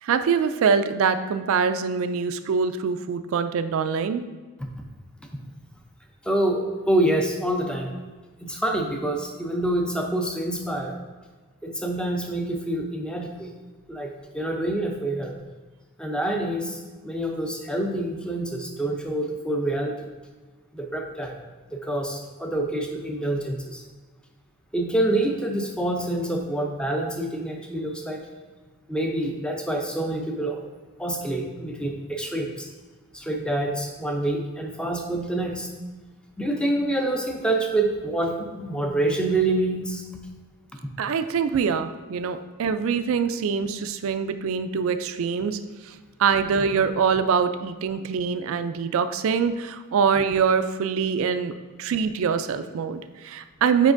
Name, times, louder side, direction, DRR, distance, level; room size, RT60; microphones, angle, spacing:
voice 1, 0.0-4.2 41.0-53.9, right 6 dB, 60° right, 10 dB, 0.3 m, -24 dB
voice 2, 6.2-7.9 8.4-11.0 11.6-13.5 13.9-15.4 16.0-20.1 20.7-21.4 21.7-23.8 24.7-28.2 28.9-30.6 31.0-32.7 33.1-35.7 36.4-40.0, right 1 dB, 5° left, 2 dB, 0.5 m, -26 dB
7.3 x 5.1 x 2.5 m, 1.3 s
head